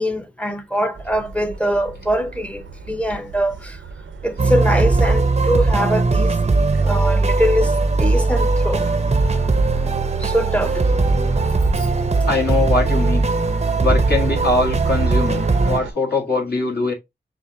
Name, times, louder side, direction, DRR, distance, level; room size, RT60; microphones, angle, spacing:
voice 1, 0.0-3.7 4.2-6.3 6.8-7.7 8.0-8.9 10.2-10.7, equal, 5° left, 0.8 m, -22 dB
sound 1, 0.9-15.9, right 5 dB, 85° right, 0.7 m, -34 dB
sound 2, 4.4-15.8, right 3 dB, 35° right, 0.6 m, -19 dB
voice 2, 12.2-13.3 13.8-16.9, left 3 dB, 55° left, 1.9 m, -22 dB
7.0 x 2.4 x 2.7 m
cardioid pair, 50°, 19 cm